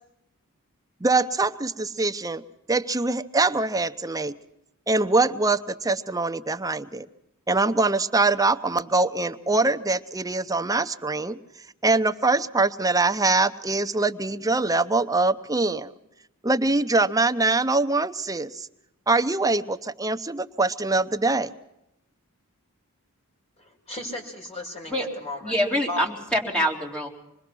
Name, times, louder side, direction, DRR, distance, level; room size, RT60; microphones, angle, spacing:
voice 1, 1.0-2.4 2.7-4.4 4.9-7.1 7.5-11.4 11.8-15.9 16.4-18.7 19.1-21.5, right 3 dB, 15° right, 8 dB, 0.7 m, -23 dB
voice 2, 23.6-25.5 25.9-26.0, left 2 dB, 30° left, 2 dB, 5.4 m, -35 dB
voice 3, 25.4-27.1, equal, 5° left, -2 dB, 3.8 m, -25 dB
26.5 x 21.0 x 6.1 m, 0.85 s
head